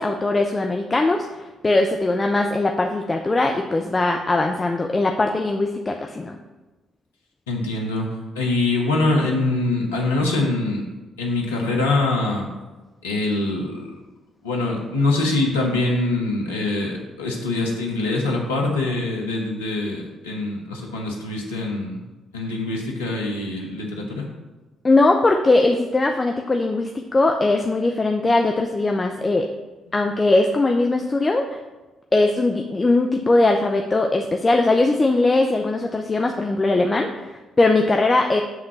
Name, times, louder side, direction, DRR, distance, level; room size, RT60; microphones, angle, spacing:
voice 1, 0.0-6.4 24.8-29.5 29.9-31.5 32.1-38.4, left 2 dB, 30° left, 4 dB, 0.6 m, -20 dB
voice 2, 7.5-8.1 8.3-10.8 11.2-12.5 13.0-13.8 14.4-22.0 22.3-24.2, left 2 dB, 85° left, 0 dB, 1.1 m, -24 dB
7.8 x 3.7 x 5.9 m, 1.2 s
hypercardioid pair, 45°, 0 cm